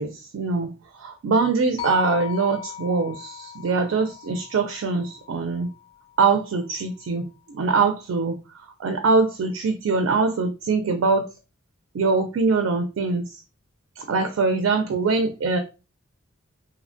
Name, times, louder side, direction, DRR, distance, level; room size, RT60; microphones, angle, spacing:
voice 1, 0.0-5.7 6.2-11.3 11.9-13.3 14.0-15.6, right 4 dB, 75° right, 7 dB, 0.4 m, -23 dB
sound 1, 1.8-6.0, left 11 dB, 30° left, 0.3 m, -37 dB
2.8 x 2.1 x 2.5 m, 0.30 s
head